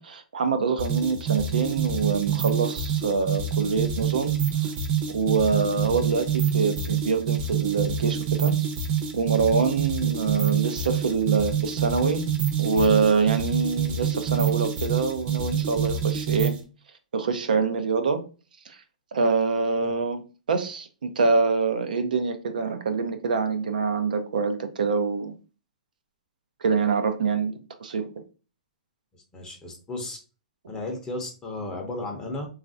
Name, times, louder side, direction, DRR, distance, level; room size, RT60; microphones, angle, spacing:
voice 1, 0.0-4.3 5.1-8.5 9.1-12.3 12.6-16.6 17.1-18.2 18.7-18.8 19.1-25.3 26.6-28.1, right 4 dB, 85° right, 7 dB, 0.5 m, -25 dB
sound 1, 0.8-16.6, right 8 dB, 35° right, 0.7 m, -27 dB
voice 2, 29.1-30.2 30.7-32.5, left 2 dB, 15° left, 1 dB, 0.6 m, -34 dB
3.1 x 2.4 x 2.5 m, 0.34 s
hypercardioid pair, 140°, 4 cm